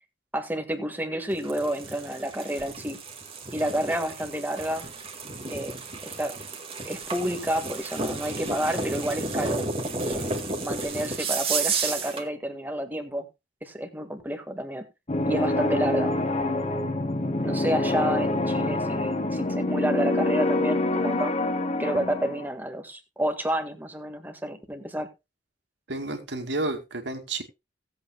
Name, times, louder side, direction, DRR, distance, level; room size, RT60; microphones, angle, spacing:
voice 1, 0.3-3.0 3.5-4.8 5.5-5.8 6.0-6.3 6.8-9.7 10.0-10.3 10.6-13.3 13.6-14.9 15.3-16.1 17.4-21.3 21.8-25.1, equal, 10° right, 1.6 m, -30 dB
sound 1, 1.3-12.3, right 3 dB, 30° right, 1.9 m, -32 dB
sound 2, 15.1-22.5, left 2 dB, 35° left, 1.0 m, -26 dB
voice 2, 25.9-27.4, right 2 dB, 70° right, 2.3 m, -31 dB
18.0 x 8.2 x 2.2 m
head